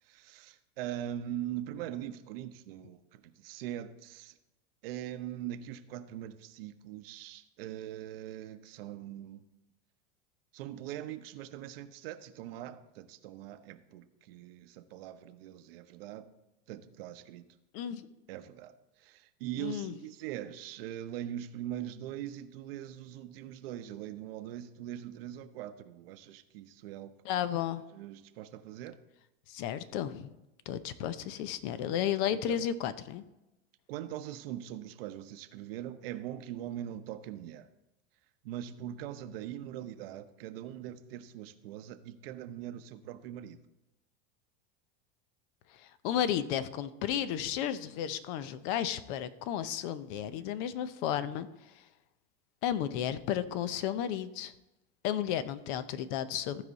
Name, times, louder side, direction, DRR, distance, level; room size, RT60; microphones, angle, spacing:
voice 1, 0.1-4.3 4.8-9.4 10.5-16.3 16.7-17.5 18.3-18.7 19.0-27.1 27.9-29.0 31.0-31.1 32.3-32.6 33.9-37.7 38.4-43.6, right 11 dB, 70° right, 0.9 m, -42 dB
voice 2, 17.7-18.1 19.6-19.9 27.2-27.8 29.5-30.3 30.7-33.2 45.7-51.8 52.6-54.5 55.0-56.6, left 10 dB, 55° left, 0.8 m, -33 dB
14.5 x 4.9 x 4.1 m
supercardioid pair, 115°, 30 cm